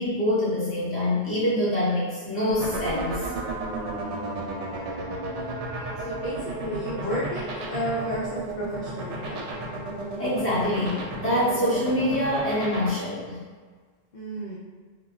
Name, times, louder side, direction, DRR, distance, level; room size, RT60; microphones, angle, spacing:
voice 1, 0.0-3.3 10.2-13.4, left 1 dB, 15° left, -8 dB, 0.8 m, -25 dB
sound 1, 2.5-12.9, right 3 dB, 80° right, 0.9 m, -32 dB
voice 2, 5.3-9.5 14.1-14.6, equal, 55° left, -7 dB, 0.5 m, -33 dB
2.2 x 2.0 x 3.6 m, 1.5 s
omnidirectional pair, 1.2 m